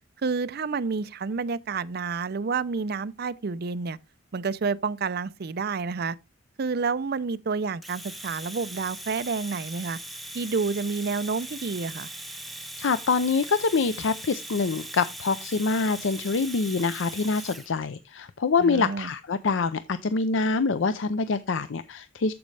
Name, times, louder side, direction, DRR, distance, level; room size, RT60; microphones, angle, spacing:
voice 1, 0.2-4.0 4.3-6.2 6.6-10.0 10.3-12.1 18.6-19.1, right 4 dB, 55° right, 0.5 m, -29 dB
Domestic sounds home sounds, 7.8-17.7, right 1 dB, ahead, 1.1 m, -40 dB
voice 2, 12.8-22.3, left 4 dB, 70° left, 0.5 m, -25 dB
14.0 x 5.3 x 3.3 m
head